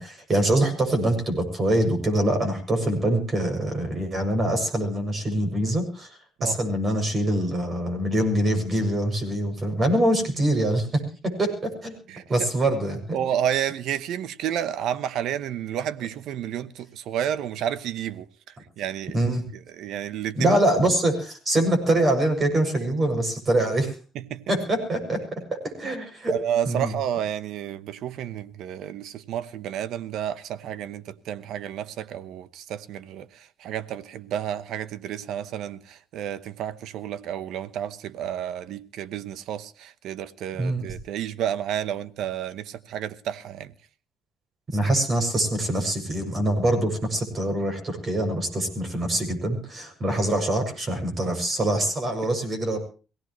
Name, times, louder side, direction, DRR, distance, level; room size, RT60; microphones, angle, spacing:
voice 1, 0.0-6.1 6.4-11.9 12.3-13.2 19.1-19.4 20.3-23.9 24.5-25.4 25.8-26.3 26.7-26.9 40.6-40.9 44.7-52.8, right 1 dB, 35° right, 6.9 m, -24 dB
voice 2, 13.1-18.2 18.8-19.2 19.7-20.6 24.1-24.4 25.8-25.9 26.3-43.7, right 10 dB, 80° right, 0.9 m, -31 dB
24.0 x 17.5 x 3.1 m
cardioid pair, 115°, 0 cm